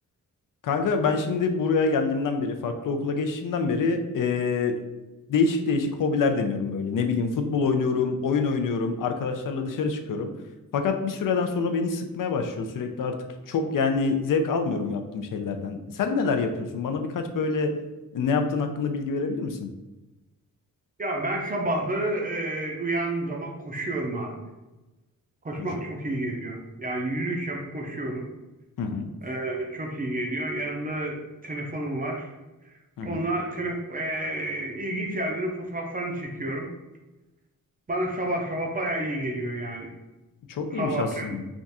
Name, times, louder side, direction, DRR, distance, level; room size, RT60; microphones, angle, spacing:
voice 1, 0.6-4.7 5.3-10.3 10.7-13.2 13.5-17.8 18.1-19.7 25.6-25.7 28.8-29.1 33.0-33.2 40.5-41.4, left 4 dB, 70° left, 5 dB, 0.5 m, -26 dB
voice 2, 21.0-24.4 25.4-28.3 29.2-32.3 32.7-32.8 33.0-36.7 37.9-39.9 40.7-41.4, right 1 dB, 25° right, 1 dB, 0.5 m, -30 dB
3.5 x 2.4 x 4.1 m, 1.1 s
wide cardioid pair, 180°, 34 cm